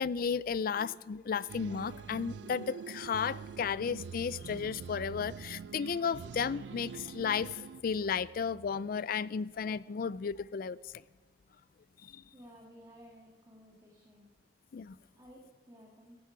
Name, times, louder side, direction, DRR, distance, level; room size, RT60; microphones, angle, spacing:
voice 1, 0.0-10.9 12.0-12.2 14.7-15.0, left 6 dB, 55° left, 19 dB, 0.4 m, -34 dB
sound 1, 1.5-7.8, right 6 dB, 70° right, 0.3 m, -45 dB
voice 2, 12.3-14.3 15.2-16.2, equal, 20° right, -2 dB, 2.0 m, -55 dB
15.0 x 11.0 x 5.0 m, 1.4 s
head